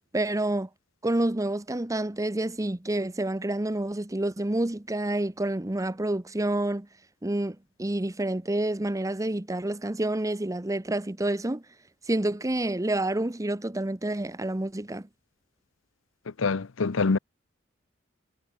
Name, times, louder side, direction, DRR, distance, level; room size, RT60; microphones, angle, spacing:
voice 1, 0.1-0.7 1.0-6.9 7.2-11.6 12.1-15.1, right 1 dB, 15° right, 0.9 m, -28 dB
voice 2, 16.4-17.2, left 4 dB, 70° left, 0.7 m, -24 dB
head